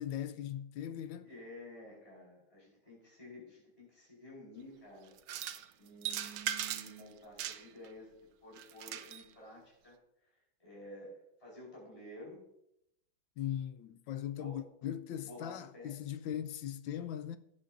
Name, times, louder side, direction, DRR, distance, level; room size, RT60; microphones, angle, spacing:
voice 1, 0.0-1.3 13.4-17.4, left 10 dB, 75° left, 1.4 m, -39 dB
voice 2, 1.2-5.1 5.8-8.1 8.4-12.4 14.4-14.7 15.2-15.9, equal, 15° left, 4.8 m, -51 dB
sound 1, 5.2-5.6 6.0-7.0 7.4-7.9 8.6-9.2, right 10 dB, 75° right, 1.3 m, -38 dB
17.0 x 8.4 x 2.6 m
omnidirectional pair, 2.2 m